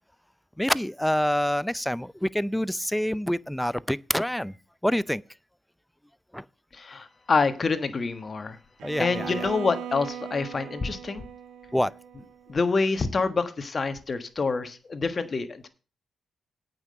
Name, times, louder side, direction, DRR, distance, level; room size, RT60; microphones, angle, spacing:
voice 1, 0.6-4.5 4.8-5.2 6.3-6.4 8.8-9.3 11.7-11.9, equal, 5° left, 0.5 m, -26 dB
voice 2, 6.7-8.6 9.0-11.2 12.5-15.7, left 4 dB, 45° left, 1.5 m, -27 dB
Bowed string instrument, 8.8-12.8, right 9 dB, 85° right, 1.0 m, -39 dB
8.8 x 6.1 x 7.7 m
cardioid pair, 65°, 0 cm